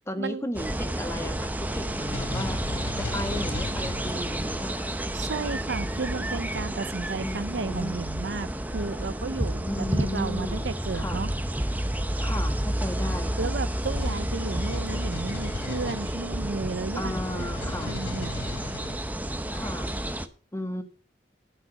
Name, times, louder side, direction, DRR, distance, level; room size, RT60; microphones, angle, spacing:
voice 1, 0.1-2.6 3.0-5.0 7.2-8.0 9.6-11.2 12.2-13.5 16.9-17.9 19.5-19.9 20.5-20.8, left 1 dB, 15° left, 1.5 m, -35 dB
sound 1, 0.5-20.3, right 1 dB, 10° right, 0.8 m, -30 dB
sound 2, 1.4-4.8 10.2-10.4 11.2-19.0, left 3 dB, 85° left, 0.7 m, -39 dB
voice 2, 5.1-11.3 13.4-17.5 17.8-18.3, right 4 dB, 75° right, 0.6 m, -33 dB
13.0 x 6.4 x 7.4 m
head